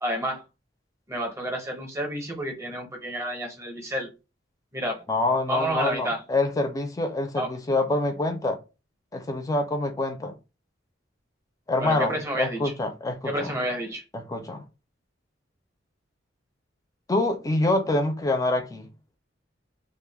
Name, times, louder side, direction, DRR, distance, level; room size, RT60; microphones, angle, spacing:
voice 1, 0.0-0.4 1.1-4.1 4.7-5.1 5.5-6.2 7.4-7.5 11.8-12.7 13.2-14.0, right 1 dB, 15° right, 0.7 m, -30 dB
voice 2, 5.1-8.6 9.1-10.4 11.7-13.5 14.1-14.6 17.1-18.9, left 2 dB, 20° left, 0.4 m, -26 dB
2.2 x 2.0 x 3.3 m
head